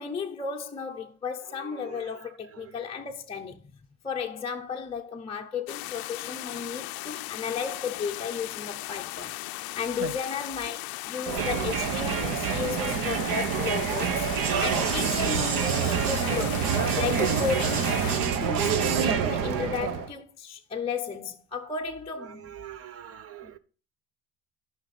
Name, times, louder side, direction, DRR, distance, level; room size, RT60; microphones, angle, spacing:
voice 1, 0.0-3.6 4.0-16.6 16.9-18.0 18.4-22.5 23.4-23.5, left 5 dB, 15° left, 0.6 m, -34 dB
voice 2, 1.5-2.8 10.0-10.1 16.6-16.7 17.0-17.1 22.2-23.6, right 11 dB, 40° right, 0.7 m, -43 dB
sound 1, 5.7-18.2, left 20 dB, 75° left, 0.6 m, -37 dB
Crowd, 11.3-20.1, right 7 dB, 65° right, 1.3 m, -27 dB
13.0 x 5.9 x 4.1 m
cardioid pair, 165°, 37 cm